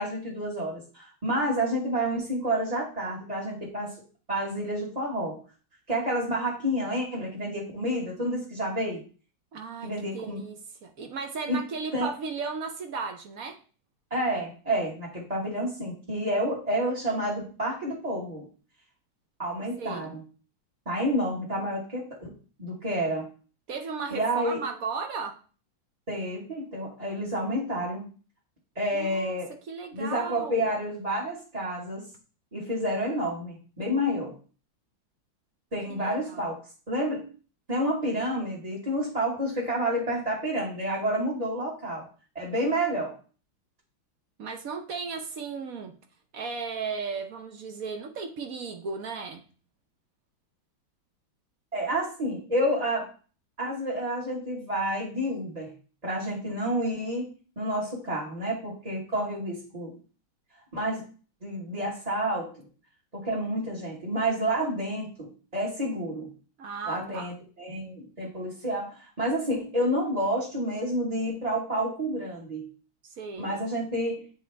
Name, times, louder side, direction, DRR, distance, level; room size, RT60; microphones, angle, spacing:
voice 1, 0.0-3.9 4.3-5.4 5.9-9.0 9.8-10.4 11.5-11.6 11.9-12.1 14.1-18.4 19.4-20.2 20.8-22.3 22.6-23.3 24.1-24.6 26.1-28.0 28.7-29.5 29.9-32.0 32.5-34.3 35.7-36.6 36.9-37.2 37.7-42.0 42.3-43.1 51.7-53.0 53.6-55.7 56.0-57.3 57.6-59.9 60.7-61.0 61.4-62.5 63.1-66.3 66.9-72.7 73.4-74.2, equal, 20° right, -5 dB, 1.5 m, -29 dB
voice 2, 9.5-13.6 19.8-20.1 23.7-25.3 28.9-29.4 29.7-30.7 35.9-36.5 44.4-45.9 46.3-49.4 66.6-67.3 73.2-73.6, right 5 dB, 60° right, 6 dB, 1.0 m, -35 dB
8.7 x 4.6 x 3.4 m, 0.38 s
omnidirectional pair, 2.3 m